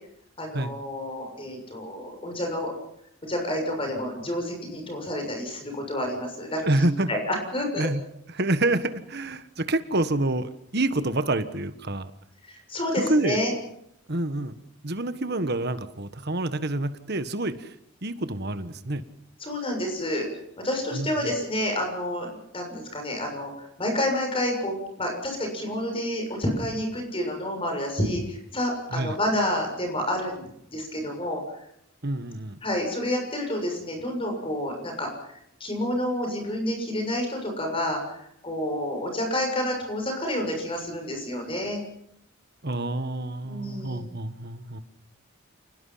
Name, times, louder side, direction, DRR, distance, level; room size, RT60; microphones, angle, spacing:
voice 1, 0.4-2.7 3.2-7.9 12.4-13.5 19.4-20.3 20.6-23.5 23.8-31.4 32.6-35.3 35.6-41.8 43.4-44.1, left 1 dB, 25° left, 3 dB, 6.8 m, -29 dB
voice 2, 6.6-7.1 7.8-8.0 8.3-12.1 13.0-13.4 14.1-14.5 14.8-17.7 18.0-19.0 20.9-21.3 28.9-29.2 32.0-32.6 42.6-44.8, right 2 dB, 50° right, 11 dB, 1.5 m, -27 dB
28.5 x 20.5 x 5.8 m, 0.74 s
head